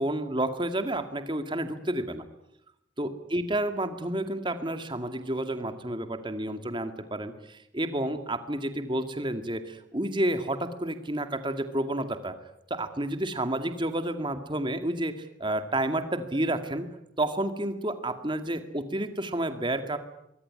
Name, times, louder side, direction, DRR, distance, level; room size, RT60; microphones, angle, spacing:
voice 1, 0.0-2.2 3.0-12.4 12.7-16.9 17.2-20.0, right 1 dB, 25° right, 8 dB, 2.2 m, -30 dB
24.5 x 22.5 x 9.8 m, 0.83 s
head